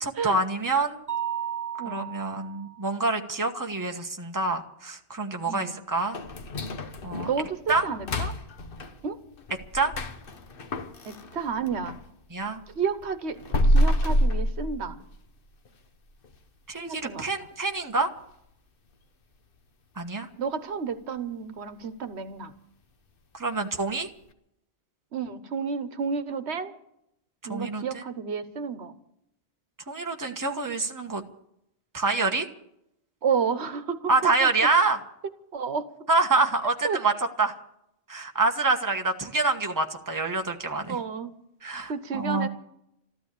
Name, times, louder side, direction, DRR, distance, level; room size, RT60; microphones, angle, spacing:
voice 1, 0.0-1.0 1.8-6.2 7.0-7.3 7.7-7.8 9.7-9.9 12.3-12.6 16.7-18.1 20.0-20.3 23.3-24.1 27.5-28.0 29.9-31.2 31.9-32.5 34.1-35.0 36.1-37.1 37.4-37.5 38.1-41.0 41.6-42.5, right 3 dB, 20° right, 4 dB, 1.2 m, -26 dB
Mallet percussion, 1.1-2.9, right 9 dB, 40° right, 0.9 m, -33 dB
sound 1, 6.1-12.1 12.5-15.3 15.7-15.8 16.2-16.4 16.9-17.2 17.5-17.6 18.2-18.3, equal, 55° left, 1.2 m, -28 dB
voice 2, 7.3-8.4 9.0-9.2 11.0-12.0 12.7-15.0 16.8-17.3 20.4-22.5 25.1-26.7 27.4-28.9 33.2-34.5 35.5-35.9 36.8-37.0 40.9-41.3 41.9-42.5, right 6 dB, 80° right, 11 dB, 1.3 m, -31 dB
14.0 x 12.5 x 8.4 m, 0.77 s
omnidirectional pair, 1.1 m